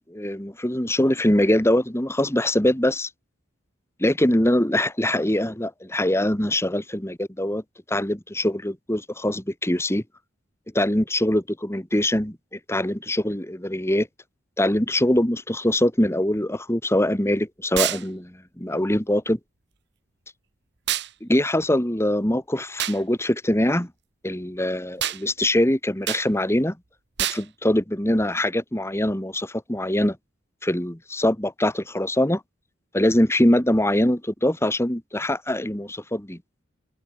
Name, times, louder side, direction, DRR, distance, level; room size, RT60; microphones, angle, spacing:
voice 1, 0.1-3.1 4.0-7.6 7.9-10.0 10.7-14.1 14.6-19.4 21.2-23.9 24.2-26.8 27.3-30.2 30.6-32.4 32.9-36.4, left 1 dB, 15° left, 2.2 m, -23 dB
sound 1, 17.8-18.0 20.9-21.1 22.8-23.0 25.0-25.2 26.1-26.3 27.2-27.4, right 12 dB, 60° right, 1.3 m, -26 dB
open air
head